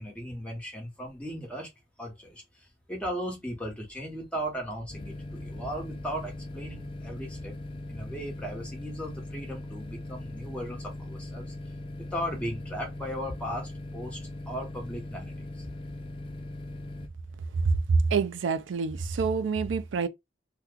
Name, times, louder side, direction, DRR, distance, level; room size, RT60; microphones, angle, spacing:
voice 1, 0.0-1.7 2.0-7.5 7.9-11.7 12.0-15.7, equal, 5° left, 1.1 m, -37 dB
sound 1, 4.9-17.1, left 1 dB, 30° left, 0.5 m, -40 dB
voice 2, 18.1-20.1, right 5 dB, 80° right, 0.4 m, -27 dB
2.9 x 2.3 x 3.6 m
head